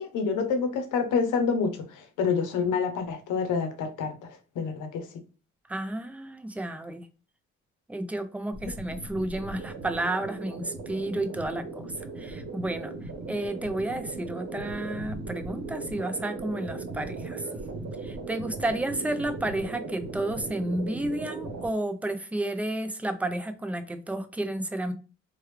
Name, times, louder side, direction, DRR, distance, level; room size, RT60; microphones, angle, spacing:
voice 1, 0.0-5.1, left 5 dB, 85° left, 0.8 m, -28 dB
voice 2, 5.7-7.1 7.9-11.9 12.2-12.9 13.3-17.5 18.0-24.9, right 1 dB, 5° right, 0.4 m, -31 dB
sound 1, 8.5-21.7, right 3 dB, 65° right, 0.9 m, -38 dB
3.1 x 2.3 x 3.2 m
cardioid pair, 90°, 30 cm